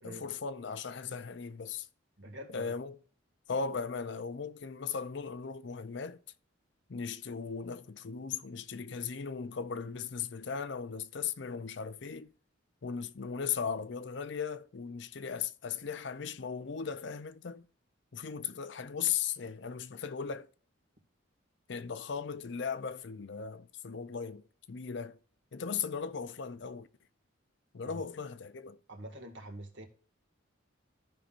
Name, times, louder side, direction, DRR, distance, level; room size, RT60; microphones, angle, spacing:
voice 1, 0.0-1.9 2.5-3.0 3.5-6.2 6.9-12.3 12.8-17.7 18.1-20.5 21.7-25.2 25.5-26.9 27.7-28.8, left 6 dB, 60° left, 0.5 m, -37 dB
voice 2, 2.2-2.7 27.8-28.0 28.9-29.9, equal, 60° right, 1.9 m, -46 dB
14.0 x 5.7 x 2.5 m
head